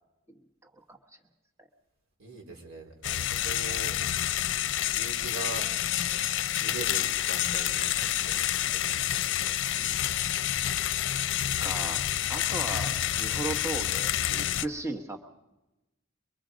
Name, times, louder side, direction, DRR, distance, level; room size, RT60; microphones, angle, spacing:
voice 1, 0.6-1.2 1.6-1.7 11.6-12.0 12.3-15.2, right 2 dB, 15° right, 3 dB, 1.2 m, -37 dB
voice 2, 2.2-4.0 4.9-5.7 6.1-9.6, right 4 dB, 80° right, 0 dB, 4.2 m, -42 dB
sound 1, 3.0-14.7, left 11 dB, 60° left, 0.6 m, -28 dB
24.0 x 23.0 x 5.1 m, 1.0 s
head